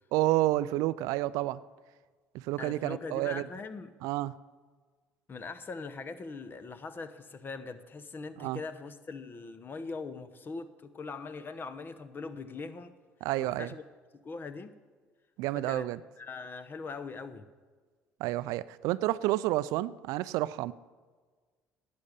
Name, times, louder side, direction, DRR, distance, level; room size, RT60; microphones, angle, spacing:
voice 1, 0.1-1.6 2.3-3.4 4.0-4.3 8.4-8.6 13.2-13.7 15.4-16.0 18.2-20.7, right 16 dB, 75° right, 17 dB, 0.4 m, -30 dB
voice 2, 2.6-3.9 5.3-12.9 13.4-13.8 14.2-14.7 15.5-15.9 16.2-17.5, left 4 dB, 35° left, 11 dB, 1.0 m, -41 dB
11.5 x 8.5 x 6.7 m, 1.4 s
supercardioid pair, 70°, 6 cm